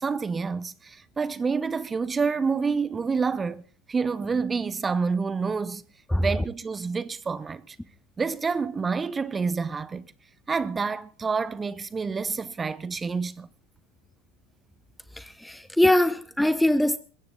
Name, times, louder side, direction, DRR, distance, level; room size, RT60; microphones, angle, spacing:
voice 1, 0.0-3.6 3.9-5.8 6.2-7.8 8.2-10.1 10.5-13.5, right 5 dB, 20° right, 1.1 m, -28 dB
voice 2, 15.2-17.0, left 1 dB, 5° left, 0.9 m, -22 dB
21.0 x 16.0 x 4.0 m
hypercardioid pair, 85°, 0 cm